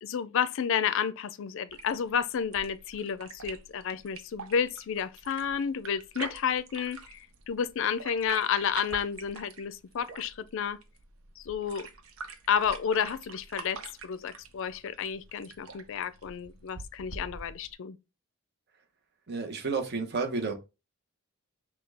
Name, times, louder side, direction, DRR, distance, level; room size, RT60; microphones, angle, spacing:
voice 1, 0.0-10.8 11.4-11.9 12.5-18.0, left 7 dB, 65° left, 0.4 m, -31 dB
sound 1, 1.7-17.7, right 4 dB, 80° right, 0.7 m, -45 dB
voice 2, 19.3-20.5, right 4 dB, 50° right, 0.9 m, -31 dB
5.8 x 2.3 x 3.3 m
head